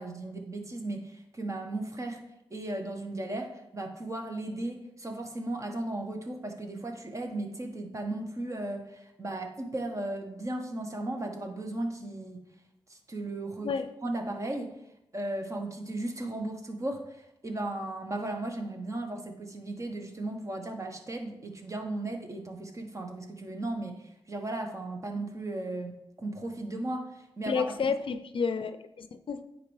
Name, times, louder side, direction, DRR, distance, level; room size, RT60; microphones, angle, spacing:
voice 1, 0.0-2.2 2.5-12.4 12.9-13.7 14.0-14.7 15.1-27.8, right 2 dB, 35° right, 4 dB, 1.0 m, -36 dB
voice 2, 27.5-29.4, left 5 dB, 65° left, 10 dB, 0.5 m, -31 dB
9.5 x 4.1 x 3.2 m, 0.88 s
cardioid pair, 70°, 9 cm